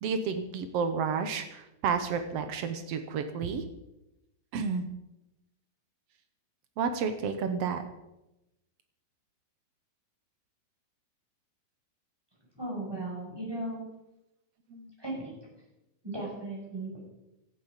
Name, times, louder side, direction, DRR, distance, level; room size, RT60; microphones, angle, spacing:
voice 1, 0.0-3.6 4.5-4.8 6.8-7.8 14.7-14.9, right 5 dB, 85° right, 8 dB, 1.3 m, -31 dB
voice 2, 12.6-13.8 15.0-15.3 16.0-17.0, right 2 dB, 5° right, -3 dB, 6.1 m, -36 dB
16.5 x 12.5 x 5.2 m, 0.93 s
omnidirectional pair, 4.3 m